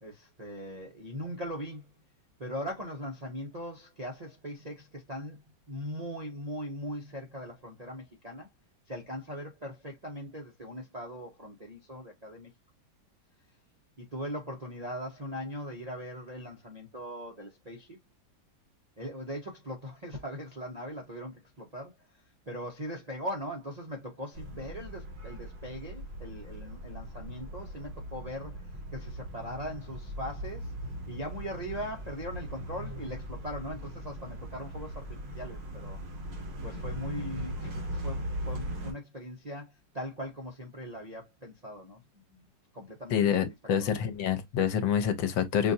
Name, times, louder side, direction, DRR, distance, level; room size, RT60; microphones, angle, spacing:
voice 1, 0.0-1.9 2.4-5.4 5.7-8.5 8.9-12.5 14.0-18.0 19.0-30.7 31.1-36.0 36.6-42.0 42.3-42.5 42.7-43.2 43.8-44.0, equal, 40° right, 0.6 m, -40 dB
sound 1, 24.3-38.9, equal, 65° right, 2.2 m, -39 dB
voice 2, 43.1-45.7, left 8 dB, 75° left, 1.5 m, -27 dB
5.8 x 2.6 x 2.6 m
omnidirectional pair, 2.1 m